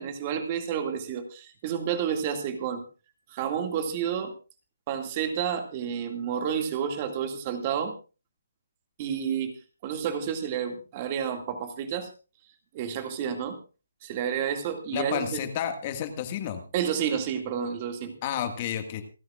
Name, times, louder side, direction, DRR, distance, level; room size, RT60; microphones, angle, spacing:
voice 1, 0.0-2.8 3.3-4.3 4.9-7.9 9.0-9.6 9.8-12.1 12.7-13.6 14.0-15.4 16.7-18.2, right 8 dB, 30° right, 6 dB, 2.2 m, -30 dB
voice 2, 14.9-16.6 18.2-19.0, left 9 dB, 35° left, 7 dB, 1.8 m, -31 dB
27.5 x 10.5 x 2.4 m, 0.33 s
figure-of-eight pair, 150°, 0 cm